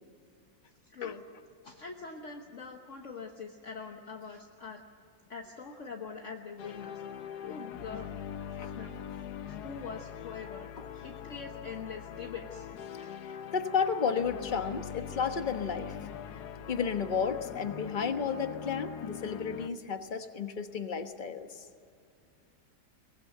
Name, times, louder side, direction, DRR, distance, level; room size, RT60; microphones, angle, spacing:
voice 1, 0.8-1.2 1.6-4.8 5.3-7.0 7.4-12.7, left 5 dB, 50° left, 3 dB, 1.5 m, -43 dB
sound 1, 6.6-19.7, left 8 dB, 80° left, 1.4 m, -42 dB
voice 2, 13.5-16.1 16.7-21.7, left 6 dB, 35° left, 7 dB, 1.2 m, -32 dB
22.5 x 19.5 x 7.9 m, 2.3 s
omnidirectional pair, 1.7 m